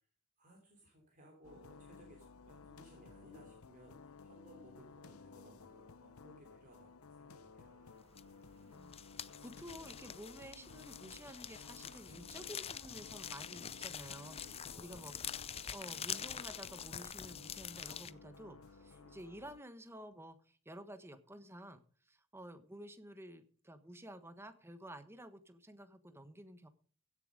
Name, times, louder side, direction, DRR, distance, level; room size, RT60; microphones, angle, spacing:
voice 1, 0.4-7.8 14.3-15.4 18.8-19.2, right 1 dB, 40° right, 0 dB, 3.5 m, -61 dB
sound 1, 1.4-19.6, left 4 dB, 75° left, 0.8 m, -57 dB
sound 2, 7.6-19.4, right 3 dB, 75° right, 2.6 m, -70 dB
sound 3, 8.2-8.5 8.7-18.1, left 8 dB, 25° left, 0.5 m, -46 dB
voice 2, 8.7-14.4 14.8-15.1 15.7-26.7, right 1 dB, 10° right, 10 dB, 1.2 m, -52 dB
16.0 x 7.5 x 5.1 m, 0.43 s
head